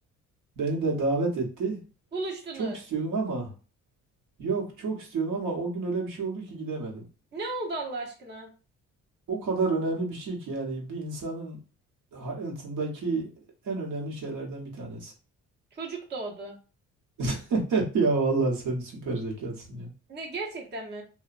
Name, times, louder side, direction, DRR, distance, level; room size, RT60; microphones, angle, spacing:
voice 1, 0.6-1.8 2.6-3.5 4.4-7.1 9.3-11.6 12.1-13.3 13.6-15.1 17.2-19.9, right 3 dB, 75° right, -2 dB, 1.1 m, -29 dB
voice 2, 2.1-2.8 7.3-8.5 15.7-16.6 20.1-21.0, right 3 dB, 35° right, -1 dB, 0.8 m, -35 dB
2.7 x 2.2 x 2.4 m, 0.35 s
cardioid pair, 90°, 30 cm